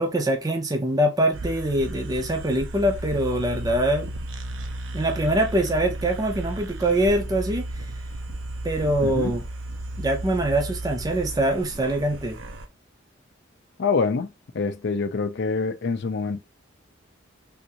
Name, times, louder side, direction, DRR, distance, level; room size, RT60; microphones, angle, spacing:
voice 1, 0.0-4.1 4.9-7.9 8.6-9.4 10.0-12.4, right 1 dB, 20° right, 0.5 m, -24 dB
sound 1, 1.3-12.7, right 1 dB, 70° right, 0.6 m, -34 dB
voice 2, 9.0-9.3 13.8-16.4, left 4 dB, 55° left, 0.4 m, -26 dB
3.5 x 2.6 x 2.8 m
head